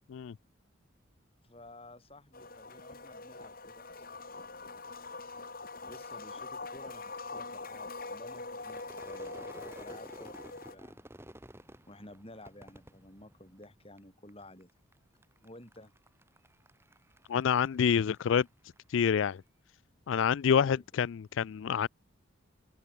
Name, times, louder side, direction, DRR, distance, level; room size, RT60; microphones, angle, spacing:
voice 1, 1.4-5.0 5.8-11.0 11.9-14.7 15.4-15.9 20.5-20.8, left 1 dB, 25° left, 7.9 m, -53 dB
sound 1, 2.3-10.7, left 3 dB, 45° left, 7.1 m, -43 dB
Crowd / Fireworks, 8.6-14.0 14.3-14.9 15.2-18.8, right 1 dB, 10° right, 3.3 m, -52 dB
voice 2, 17.3-18.5 18.9-19.4 20.1-21.9, left 7 dB, 65° left, 0.3 m, -27 dB
open air
head